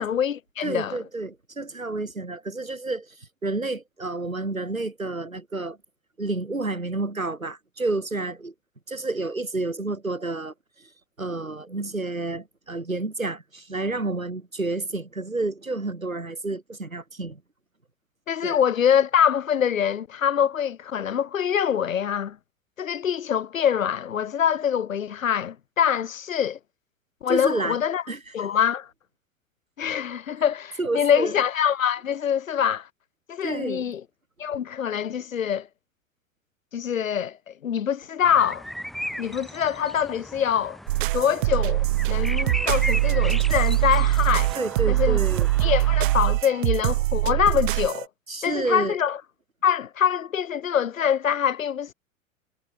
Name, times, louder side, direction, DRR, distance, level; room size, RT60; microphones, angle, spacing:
voice 1, 0.0-1.0 18.3-22.4 22.8-26.6 27.2-28.0 28.3-28.9 29.8-32.9 33.3-34.0 34.4-35.7 36.7-38.6 39.2-40.8 41.1-44.5 44.9-45.2 45.6-48.1 48.4-49.2 49.6-51.9, left 8 dB, 80° left, 0.7 m, -24 dB
voice 2, 0.6-5.8 6.2-8.5 8.9-10.9 11.2-17.4 18.4-18.6 27.3-27.8 28.1-28.2 30.8-31.3 33.4-33.9 44.6-45.5 48.3-49.0, right 2 dB, 90° right, 2.0 m, -30 dB
sound 1, 38.2-46.1, equal, ahead, 1.3 m, -36 dB
sound 2, 40.9-48.0, right 18 dB, 40° right, 0.4 m, -23 dB
figure-of-eight pair, 90°, 40 cm